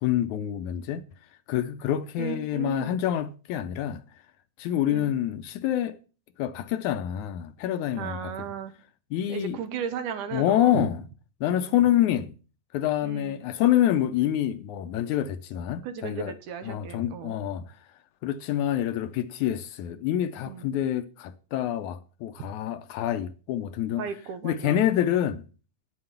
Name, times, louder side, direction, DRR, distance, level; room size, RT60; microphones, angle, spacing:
voice 1, 0.0-1.0 1.5-4.0 4.6-6.0 6.4-8.3 9.1-9.6 10.3-11.0 11.4-12.3 12.7-16.3 16.6-17.7 18.2-24.1 24.4-25.5, left 11 dB, 75° left, 1.9 m, -27 dB
voice 2, 2.2-3.0 4.9-5.1 8.0-8.7 9.3-10.9 11.4-11.8 13.0-13.4 15.8-17.4 20.5-20.7 22.4-22.5 24.0-24.8, right 8 dB, 75° right, 2.6 m, -35 dB
9.6 x 7.7 x 6.8 m
omnidirectional pair, 3.7 m